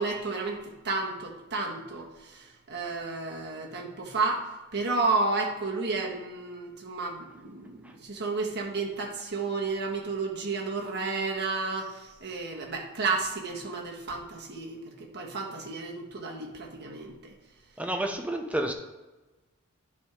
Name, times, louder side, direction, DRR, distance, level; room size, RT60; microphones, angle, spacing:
voice 1, 0.0-17.3, right 3 dB, 50° right, 0 dB, 1.4 m, -32 dB
voice 2, 17.8-18.7, right 1 dB, 5° right, 3 dB, 0.7 m, -29 dB
10.5 x 3.6 x 4.9 m, 1.2 s
head